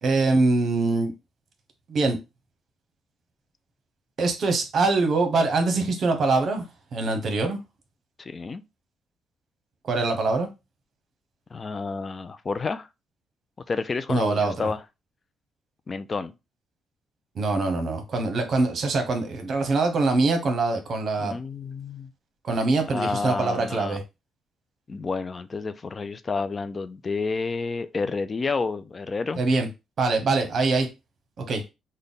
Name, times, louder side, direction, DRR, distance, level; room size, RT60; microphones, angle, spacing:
voice 1, 0.0-1.1 1.9-2.2 4.2-6.6 6.9-7.6 9.9-10.5 14.1-14.5 17.4-21.4 22.4-24.0 29.4-29.7 30.0-30.9 31.4-31.6, right 3 dB, 55° right, 0.9 m, -23 dB
voice 2, 8.2-8.6 11.5-12.9 13.7-14.8 15.9-16.3 21.2-22.1 22.9-24.0 24.9-29.4, left 4 dB, 35° left, 0.3 m, -30 dB
3.4 x 2.1 x 3.9 m
cardioid pair, 90°, 0 cm